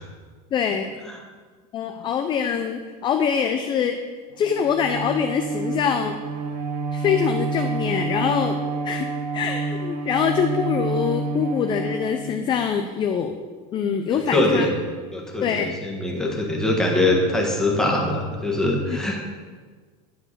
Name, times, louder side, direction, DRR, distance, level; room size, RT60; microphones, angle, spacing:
voice 1, 0.5-0.9 1.7-4.0 4.4-6.2 6.9-8.6 8.8-9.1 9.3-13.4 13.7-14.6 15.4-15.7 18.9-19.0, left 7 dB, 25° left, 6 dB, 0.4 m, -24 dB
Bowed string instrument, 4.4-12.8, right 3 dB, 80° right, 1.0 m, -28 dB
voice 2, 14.1-14.8 15.1-19.2, left 1 dB, 5° left, -2 dB, 1.4 m, -22 dB
9.7 x 4.6 x 6.6 m, 1.5 s
supercardioid pair, 150°, 20 cm